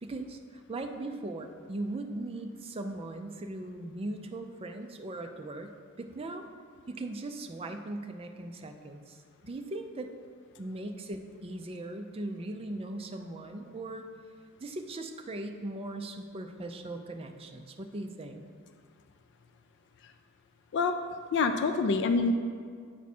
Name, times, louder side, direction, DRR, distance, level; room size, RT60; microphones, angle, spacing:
voice 1, 0.0-6.4 6.9-10.1 10.6-14.1 14.6-18.4, right 2 dB, 25° right, 5 dB, 0.4 m, -39 dB
voice 2, 21.3-22.3, left 4 dB, 55° left, 7 dB, 0.3 m, -26 dB
8.3 x 4.7 x 4.2 m, 2.1 s
head